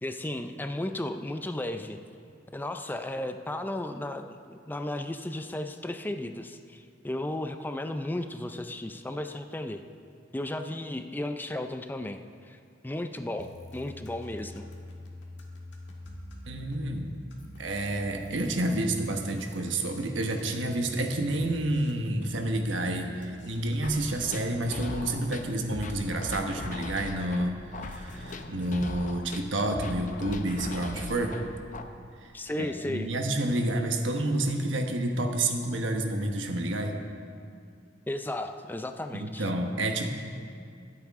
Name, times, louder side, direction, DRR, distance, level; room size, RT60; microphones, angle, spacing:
voice 1, 0.0-2.0 2.5-9.8 10.3-14.6 32.3-33.1 38.1-39.5, left 1 dB, 10° left, 7 dB, 0.4 m, -34 dB
sound 1, 13.4-24.1, left 1 dB, 70° left, 1.7 m, -45 dB
voice 2, 16.5-17.1 17.6-31.4 32.2-32.3 32.6-37.0 39.1-40.1, right 1 dB, 80° right, 4 dB, 1.2 m, -29 dB
sound 2, 23.8-31.8, left 2 dB, 45° left, 0.7 m, -39 dB
23.0 x 8.3 x 3.6 m, 2.3 s
head